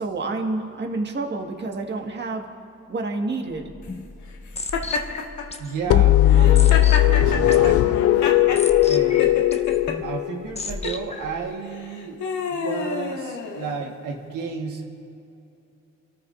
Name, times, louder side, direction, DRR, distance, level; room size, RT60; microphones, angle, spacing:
voice 1, 0.0-2.5 2.9-3.6, right 3 dB, 35° right, 2 dB, 1.7 m, -28 dB
sound 1, 3.5-11.5, left 3 dB, 20° left, 0.8 m, -35 dB
Laughter, 4.7-5.5 6.3-8.6 9.2-10.0 10.7-11.0 11.7-13.9, left 5 dB, 75° left, 1.6 m, -29 dB
voice 2, 5.6-8.4 8.8-9.3 10.0-14.9, right 5 dB, 85° right, 1 dB, 1.5 m, -32 dB
sound 2, 5.9-10.6, left 14 dB, 50° left, 0.4 m, -17 dB
29.0 x 13.5 x 2.6 m, 2.8 s
cardioid pair, 90°, 30 cm